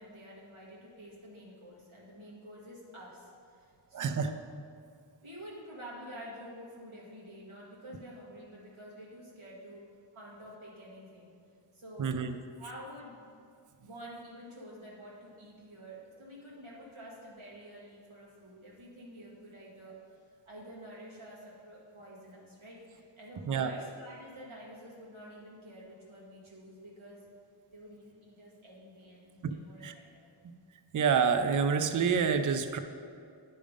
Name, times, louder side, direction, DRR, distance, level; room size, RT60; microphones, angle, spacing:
voice 1, 0.0-4.3 5.2-9.8 10.1-11.3 11.7-12.2 12.6-13.2 13.8-20.0 20.5-27.2 27.7-30.3, equal, 80° right, -6 dB, 1.9 m, -49 dB
voice 2, 3.9-4.3 12.0-12.3 23.5-23.7 29.4-29.5 29.8-29.9 30.9-32.8, right 6 dB, 45° right, 9 dB, 0.4 m, -27 dB
9.9 x 3.4 x 5.1 m, 2.4 s
wide cardioid pair, 55°, 47 cm